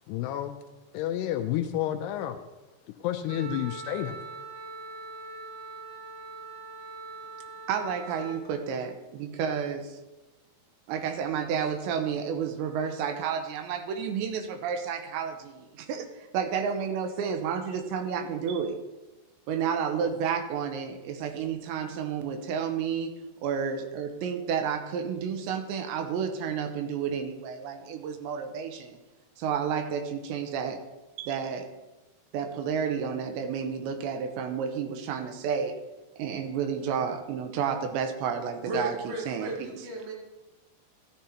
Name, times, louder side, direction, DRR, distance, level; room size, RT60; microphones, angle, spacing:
voice 1, 0.1-0.6 0.9-2.4 3.0-4.2, left 11 dB, 80° left, 7 dB, 2.5 m, -30 dB
Wind instrument woodwind instrument, 3.3-8.4, right 4 dB, 45° right, 3.7 m, -42 dB
voice 2, 7.7-10.0 10.9-18.8 19.5-23.1 23.4-29.0 29.4-30.8 31.2-31.7 32.3-35.7 36.2-38.9 39.3-39.5, right 7 dB, 90° right, 7 dB, 3.2 m, -31 dB
voice 3, 38.6-40.1, right 2 dB, 70° right, -3 dB, 4.3 m, -35 dB
13.0 x 11.5 x 2.9 m, 1.1 s
omnidirectional pair, 5.0 m